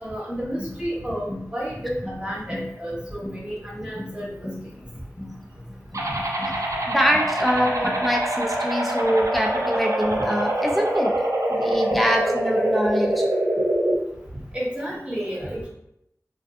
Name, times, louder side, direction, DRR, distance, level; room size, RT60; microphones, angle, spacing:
voice 1, 0.0-4.2 14.5-15.7, equal, 20° right, -6 dB, 1.0 m, -31 dB
sound 1, 0.6-8.3, left 1 dB, 65° left, 0.9 m, -39 dB
sound 2, 5.9-13.9, right 1 dB, 60° right, 0.5 m, -24 dB
voice 2, 6.9-13.3, equal, ahead, 0 dB, 0.5 m, -24 dB
2.5 x 2.3 x 2.5 m, 0.80 s
wide cardioid pair, 45°, 6 cm